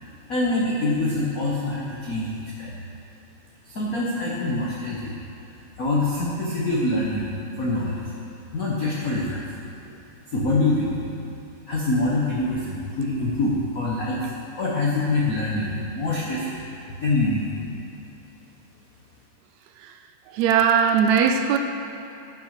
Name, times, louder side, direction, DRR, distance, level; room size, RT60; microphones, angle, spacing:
voice 1, 0.3-2.8 3.7-5.1 5.8-7.3 7.6-8.0 8.5-9.4 10.3-11.0 11.7-14.3 14.6-16.6 17.0-17.7, left 2 dB, 70° left, -5 dB, 0.8 m, -25 dB
voice 2, 20.4-21.6, right 7 dB, 80° right, 6 dB, 1.9 m, -19 dB
11.5 x 6.1 x 6.5 m, 2.8 s
omnidirectional pair, 3.3 m